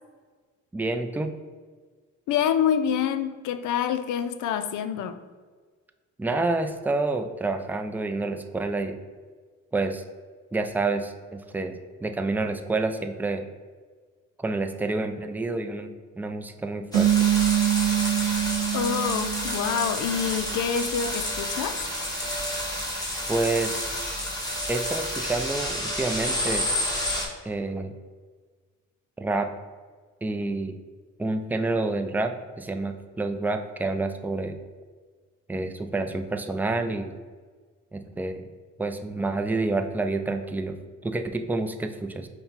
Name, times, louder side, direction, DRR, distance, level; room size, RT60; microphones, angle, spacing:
voice 1, 0.7-1.3 6.2-9.0 9.7-10.0 10.5-13.4 14.4-17.1 23.3-23.8 24.7-26.7 27.4-27.9 29.2-29.5 30.2-30.8 31.2-34.6 35.5-37.1 37.9-38.4 38.8-40.7 41.0-42.3, right 2 dB, 5° right, 6 dB, 0.3 m, -28 dB
voice 2, 2.3-5.2 18.7-21.8, left 8 dB, 80° left, 10 dB, 0.5 m, -26 dB
sound 1, 16.9-27.3, left 1 dB, 15° left, 1.4 m, -30 dB
sound 2, 16.9-20.3, right 12 dB, 80° right, 0.5 m, -24 dB
5.5 x 2.2 x 4.3 m, 1.5 s
cardioid pair, 90°, 30 cm